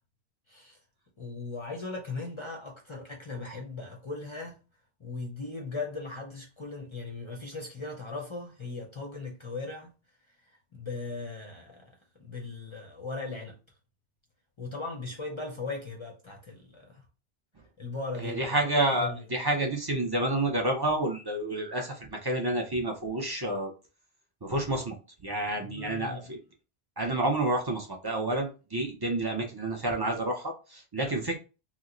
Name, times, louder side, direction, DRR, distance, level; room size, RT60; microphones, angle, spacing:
voice 1, 0.5-0.8 1.2-4.6 5.0-9.9 10.5-11.9 12.2-13.6 14.6-17.0 17.8-19.2 25.6-26.2 31.0-31.2, left 3 dB, 35° left, 0.5 m, -38 dB
voice 2, 18.2-23.7 24.4-24.9 25.2-26.4 27.0-31.4, right 1 dB, 35° right, 0.4 m, -29 dB
2.8 x 2.0 x 3.7 m
omnidirectional pair, 1.1 m